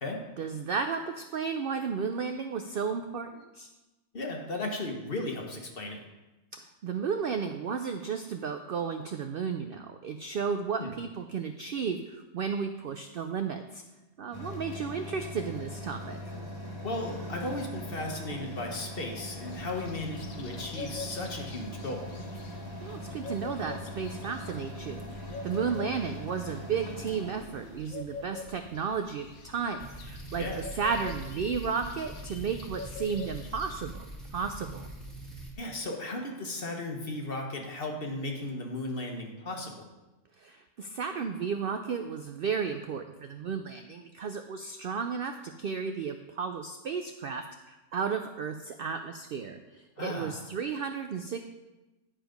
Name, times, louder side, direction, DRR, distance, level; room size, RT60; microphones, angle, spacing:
voice 1, 0.4-3.7 6.5-13.8 14.2-16.2 22.8-34.1 34.3-34.9 40.4-51.5, right 6 dB, 70° right, 7 dB, 0.5 m, -33 dB
voice 2, 4.1-6.0 10.8-10.9 16.8-22.1 30.4-30.6 35.6-39.8 50.0-50.3, left 2 dB, 45° left, 1 dB, 1.3 m, -35 dB
sound 1, 14.3-27.8, equal, 15° left, 1.2 m, -41 dB
sound 2, 19.4-33.8, left 4 dB, 90° left, 1.4 m, -45 dB
sound 3, 29.8-35.5, right 1 dB, ahead, 1.5 m, -43 dB
10.0 x 4.9 x 5.2 m, 1.1 s
omnidirectional pair, 1.5 m